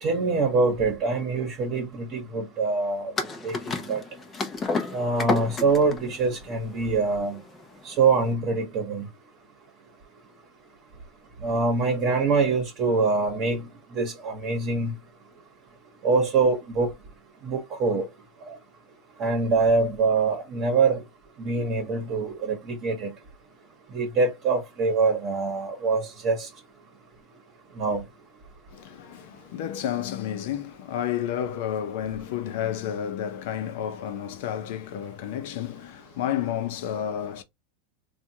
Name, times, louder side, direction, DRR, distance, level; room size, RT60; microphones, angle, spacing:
voice 1, 0.0-3.1 3.4-4.0 4.9-7.4 7.8-9.1 11.4-14.9 16.0-16.9 17.4-18.1 18.4-18.6 19.2-21.0 21.4-23.1 23.9-26.5 27.7-28.0, right 4 dB, 35° right, 1.1 m, -24 dB
sound 1, 3.2-8.3, left 4 dB, 20° left, 0.7 m, -31 dB
voice 2, 28.7-37.4, left 10 dB, 60° left, 0.7 m, -31 dB
3.4 x 2.4 x 2.8 m
supercardioid pair, 150°, 0 cm